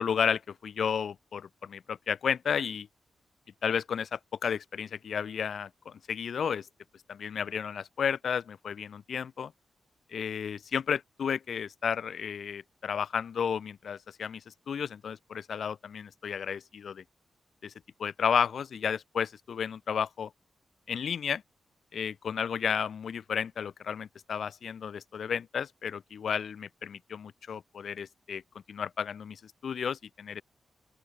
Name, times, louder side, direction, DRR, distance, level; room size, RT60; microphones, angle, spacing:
voice 1, 0.0-2.9 3.6-6.7 7.1-9.5 10.1-14.4 14.7-17.0 17.6-17.7 18.0-20.3 20.9-21.4 21.9-28.4 28.7-30.4, left 7 dB, 70° left, 3.9 m, -32 dB
open air
wide cardioid pair, 110°, 0 cm